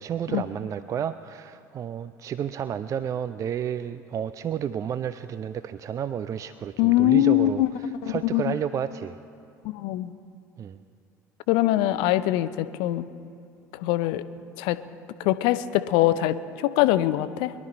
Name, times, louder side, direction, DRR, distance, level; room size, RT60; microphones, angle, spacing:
voice 1, 0.0-7.6 8.1-9.2 10.6-10.8, right 8 dB, 35° right, 13 dB, 0.4 m, -31 dB
voice 2, 6.8-7.7 8.0-8.5 9.6-10.1 11.5-13.1 13.7-14.2 14.6-14.8 15.2-17.5, left 14 dB, 60° left, 14 dB, 0.6 m, -23 dB
22.0 x 11.5 x 4.3 m, 2.4 s
figure-of-eight pair, 65°, 9 cm